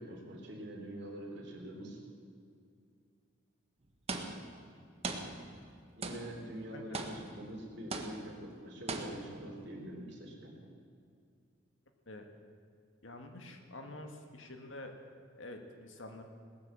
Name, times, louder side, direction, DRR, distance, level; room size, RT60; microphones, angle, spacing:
voice 1, 0.0-2.0 5.9-10.5, right 1 dB, 60° right, 0 dB, 3.5 m, -45 dB
sound 1, 4.1-4.7 5.0-5.7 6.0-6.5 6.9-7.5 7.9-8.4 8.9-9.5, right 3 dB, 30° right, 1.2 m, -40 dB
voice 2, 6.7-7.1 12.1-12.3 13.0-15.0 15.4-16.2, left 2 dB, 80° left, 5 dB, 1.8 m, -47 dB
18.5 x 10.5 x 7.4 m, 2.3 s
head